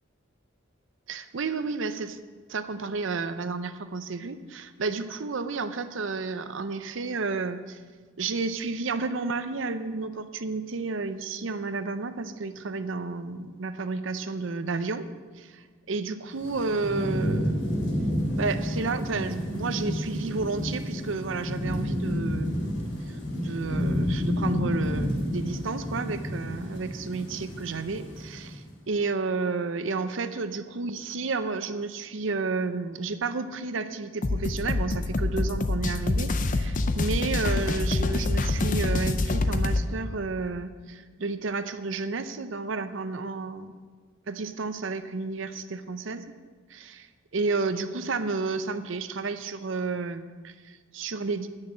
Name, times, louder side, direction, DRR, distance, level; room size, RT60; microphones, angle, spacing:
voice 1, 1.1-2.2 2.5-7.8 8.2-15.1 15.4-17.8 18.4-22.7 23.1-43.7 44.3-46.3 46.7-47.1 47.3-51.5, right 4 dB, 70° right, 11 dB, 0.6 m, -31 dB
Thunderstorm / Rain, 16.4-28.6, equal, 60° left, 2.3 m, -30 dB
sound 1, 34.2-39.8, left 2 dB, 40° left, 0.5 m, -26 dB
10.5 x 6.4 x 7.4 m, 1.5 s
head